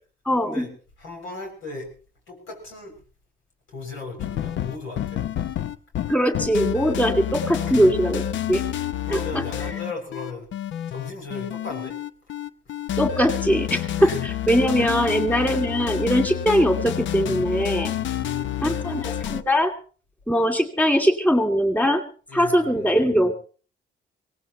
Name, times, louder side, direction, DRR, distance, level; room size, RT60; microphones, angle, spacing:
voice 1, 0.3-0.6 6.1-8.6 9.1-9.4 13.0-17.9 18.6-19.7 20.3-22.0 22.3-23.3, equal, 5° left, 5 dB, 2.6 m, -21 dB
voice 2, 1.0-1.9 2.3-2.9 3.7-5.2 7.7-7.8 9.1-10.5 10.9-12.0 14.0-14.2 14.8-15.0 17.9-18.9 22.3-22.9, left 3 dB, 85° left, 2 dB, 6.6 m, -36 dB
sound 1, 4.2-19.4, left 11 dB, 70° left, 0.7 m, -29 dB
23.5 x 18.0 x 3.0 m, 0.38 s
cardioid pair, 90°, 20 cm